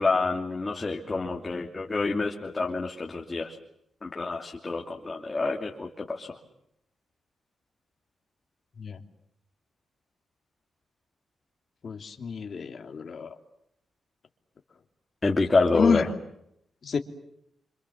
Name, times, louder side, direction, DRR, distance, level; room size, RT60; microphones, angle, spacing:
voice 1, 0.0-3.5 4.0-6.3 15.2-16.0, left 3 dB, 25° left, 0 dB, 2.9 m, -27 dB
voice 2, 11.8-13.3 15.7-16.1 16.8-17.0, left 6 dB, 45° left, 4 dB, 2.9 m, -28 dB
29.5 x 26.5 x 7.2 m, 0.77 s
wide cardioid pair, 130°, 0 cm